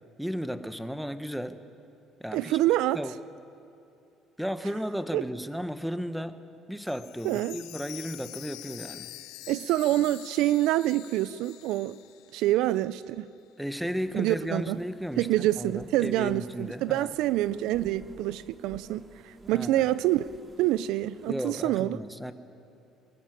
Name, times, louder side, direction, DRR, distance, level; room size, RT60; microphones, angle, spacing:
voice 1, 0.2-1.6 2.2-2.6 2.9-3.1 4.4-6.4 6.7-9.1 13.6-17.1 19.5-19.9 21.3-22.3, equal, ahead, 1.1 m, -34 dB
voice 2, 2.3-3.0 5.1-5.2 7.2-7.6 9.5-12.0 12.3-13.3 14.1-14.8 15.2-20.3 20.6-22.0, right 15 dB, 80° right, 0.4 m, -26 dB
Chime, 6.8-12.7 13.1-13.2 13.7-13.8, left 15 dB, 80° left, 0.7 m, -46 dB
sound 1, 14.0-21.3, right 1 dB, 30° right, 2.5 m, -50 dB
22.5 x 14.0 x 8.9 m
supercardioid pair, 90°, 0 cm